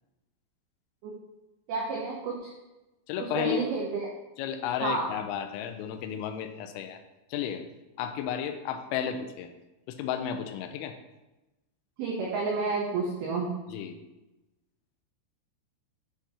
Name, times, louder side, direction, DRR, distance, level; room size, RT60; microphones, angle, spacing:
voice 1, 1.7-2.5 3.2-4.1 4.8-5.1 12.0-13.5, right 3 dB, 90° right, -2 dB, 2.1 m, -30 dB
voice 2, 3.1-3.7 4.4-7.0 7.3-7.6 8.0-9.5 9.9-10.9 13.7-14.0, left 9 dB, 85° left, 7 dB, 3.2 m, -33 dB
9.6 x 5.9 x 2.8 m, 1.0 s
omnidirectional pair, 5.8 m